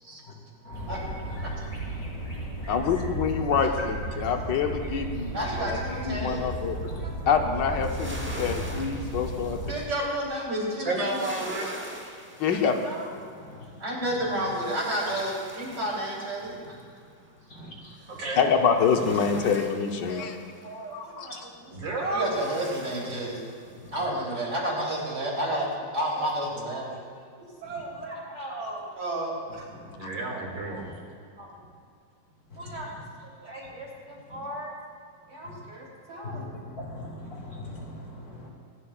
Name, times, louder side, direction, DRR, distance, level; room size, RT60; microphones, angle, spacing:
voice 1, 0.2-1.6 2.4-2.6 5.2-5.3 6.2-6.4 6.7-7.0 7.8-8.7 9.4-9.7 11.7-11.8 12.1-12.4 13.2-14.5 15.0-15.2 15.7-15.8 16.4-18.0 18.5-18.6 18.9-19.4 20.9-21.0 21.4-21.7 22.3-22.4 23.6-24.2 27.6-28.1 28.6-28.7 29.5-29.9 30.7-31.0 32.4-33.0 33.4-33.6 33.9-34.4 35.2-35.6 35.8-36.0 36.2-38.5, left 2 dB, 55° left, -2 dB, 2.7 m, -45 dB
sound 1, 0.7-9.7, right 1 dB, 30° left, 3.4 m, -34 dB
voice 2, 2.7-5.8 6.0-6.8 7.3-9.6 12.4-12.8 18.3-20.4 20.9-21.3, left 6 dB, 75° left, 4 dB, 1.5 m, -26 dB
voice 3, 5.3-6.4 7.0-7.1 9.7-11.2 12.8-13.2 13.8-16.5 20.1-20.3 20.6-21.3 22.0-23.4 23.9-26.9 27.4-29.7 31.4-31.5 32.6-32.9 33.2-34.7 35.3-36.5, right 1 dB, 65° right, -4 dB, 4.0 m, -32 dB
sound 2, 6.5-6.9 7.5-10.2 10.9-13.7 14.1-17.1 17.9-20.7 22.0-24.0, right 1 dB, 10° right, 0.8 m, -44 dB
voice 4, 10.8-11.8 18.1-18.4 21.7-22.3 30.0-30.9, right 2 dB, 90° right, -1 dB, 3.0 m, -31 dB
25.5 x 11.5 x 2.4 m, 2.2 s
omnidirectional pair, 2.0 m